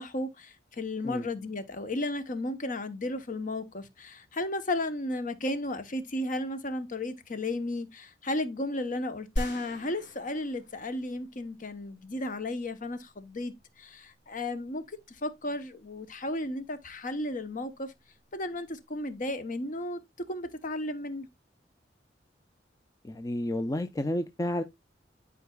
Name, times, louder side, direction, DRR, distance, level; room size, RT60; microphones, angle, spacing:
voice 1, 0.0-13.5 13.8-14.8 15.2-17.9 18.3-20.0 20.3-21.3, left 1 dB, 45° left, 1.0 m, -34 dB
sound 1, 9.4-11.6, equal, 90° left, 3.2 m, -37 dB
voice 2, 23.0-24.6, left 1 dB, 20° left, 0.5 m, -31 dB
11.0 x 4.6 x 2.3 m
head